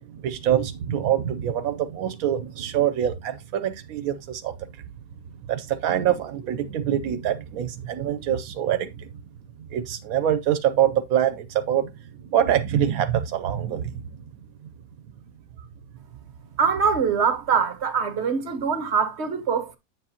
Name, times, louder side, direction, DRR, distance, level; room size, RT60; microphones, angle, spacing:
voice 1, 0.1-4.5 5.5-9.1 9.7-11.9 12.3-14.0, right 10 dB, 85° right, 1.1 m, -25 dB
voice 2, 16.6-19.8, right 6 dB, 50° right, 1.5 m, -23 dB
8.3 x 7.4 x 2.8 m
omnidirectional pair, 1.5 m